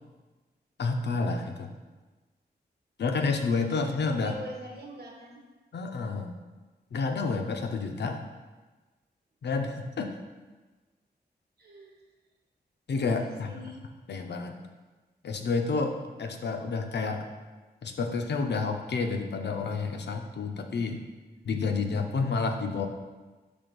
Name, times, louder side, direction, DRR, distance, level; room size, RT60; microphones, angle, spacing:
voice 1, 0.8-1.7 3.0-4.3 5.7-6.3 6.9-8.3 9.4-10.1 12.9-13.5 14.1-14.6 15.2-17.3 17.8-21.0 21.4-22.9, left 4 dB, 80° left, 5 dB, 0.6 m, -29 dB
voice 2, 4.1-5.5 11.6-11.9 13.0-13.8, left 1 dB, 65° right, 0 dB, 1.1 m, -44 dB
6.2 x 3.4 x 5.2 m, 1.2 s
wide cardioid pair, 115°, 17 cm